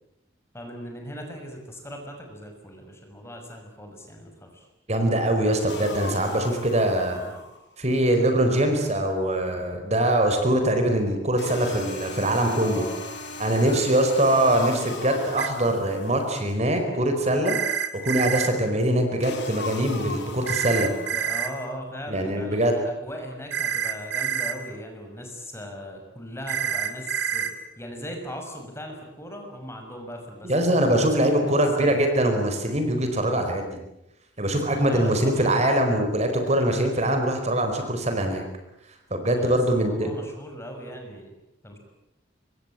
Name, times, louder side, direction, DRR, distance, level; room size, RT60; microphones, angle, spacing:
voice 1, 0.5-4.7 7.1-7.4 12.6-13.0 13.6-13.9 21.0-30.9 31.2-31.5 31.8-32.0 34.9-35.9 39.3-41.3 41.6-41.8, equal, 15° left, 3 dB, 6.2 m, -39 dB
voice 2, 4.9-7.2 7.8-12.8 13.4-17.6 17.9-20.9 22.1-22.7 30.4-33.7 34.4-38.4 39.1-40.1, right 1 dB, 35° right, 5 dB, 4.6 m, -23 dB
sound 1, 5.7-7.6 11.4-16.7 19.2-21.6, left 3 dB, 70° left, 4.1 m, -38 dB
sound 2, 15.4-15.5 17.5-18.5 20.5-21.5 23.5-24.5 26.5-27.5, right 8 dB, 75° right, 2.9 m, -27 dB
26.0 x 23.5 x 8.6 m, 0.89 s
head